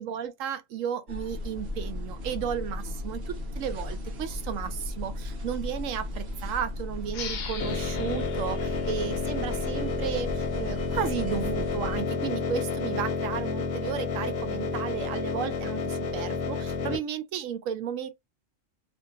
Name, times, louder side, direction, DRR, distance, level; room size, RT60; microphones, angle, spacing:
voice 1, 0.0-18.1, right 8 dB, 80° right, 1.0 m, -34 dB
sound 1, 1.1-12.0, left 1 dB, 60° right, 1.0 m, -36 dB
sound 2, 7.1-10.4, left 6 dB, 50° left, 0.5 m, -41 dB
sound 3, 7.6-17.0, left 4 dB, 70° left, 1.0 m, -31 dB
2.8 x 2.5 x 2.5 m
omnidirectional pair, 1.3 m